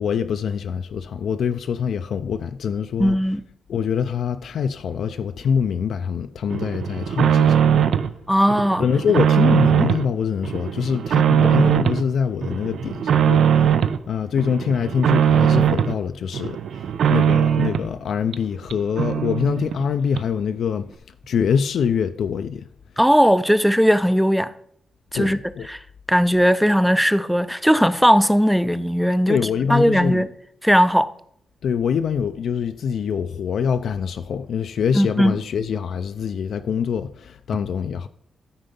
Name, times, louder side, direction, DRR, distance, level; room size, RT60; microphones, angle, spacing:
voice 1, 0.0-3.2 3.7-7.6 8.8-13.7 14.1-20.9 21.3-22.6 25.1-25.7 29.3-30.3 31.6-38.1, left 7 dB, 75° left, 0.4 m, -24 dB
voice 2, 3.0-3.4 8.3-8.8 23.0-24.5 25.1-25.4 25.7-25.8 26.1-29.4 29.7-30.3 30.6-31.1 34.9-35.4, equal, ahead, 0.4 m, -18 dB
sound 1, 6.5-8.1 8.5-10.1 10.4-12.1 12.4-14.0 14.4-16.0 16.3-17.9 18.3-18.4 18.7-18.8 19.0-19.8 20.2-20.3, right 8 dB, 90° right, 0.5 m, -20 dB
13.0 x 4.4 x 5.3 m
wide cardioid pair, 150°, 0 cm